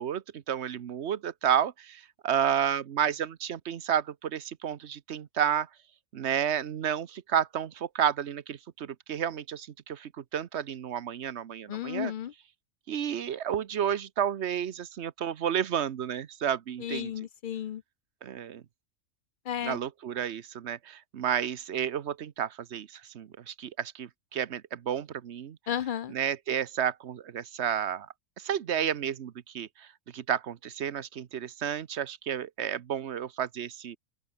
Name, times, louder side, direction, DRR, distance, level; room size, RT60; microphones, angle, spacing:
voice 1, 0.0-5.7 6.1-12.1 12.9-17.1 18.2-18.6 19.6-25.6 26.1-28.1 28.4-29.9 30.1-34.0, right 9 dB, 55° right, 1.1 m, -31 dB
voice 2, 11.7-12.3 16.8-17.8 19.5-19.8 25.7-26.1, left 9 dB, 75° left, 0.4 m, -33 dB
open air
omnidirectional pair, 1.5 m